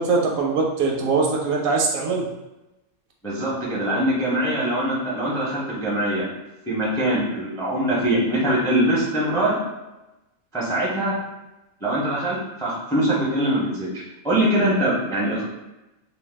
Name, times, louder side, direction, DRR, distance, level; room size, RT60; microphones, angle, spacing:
voice 1, 0.0-2.3, right 4 dB, 80° right, 0 dB, 1.0 m, -22 dB
voice 2, 3.2-6.3 6.7-9.6 10.5-11.1 11.8-15.4, right 1 dB, 5° left, -6 dB, 0.4 m, -23 dB
2.6 x 2.2 x 3.3 m, 1.0 s
omnidirectional pair, 1.5 m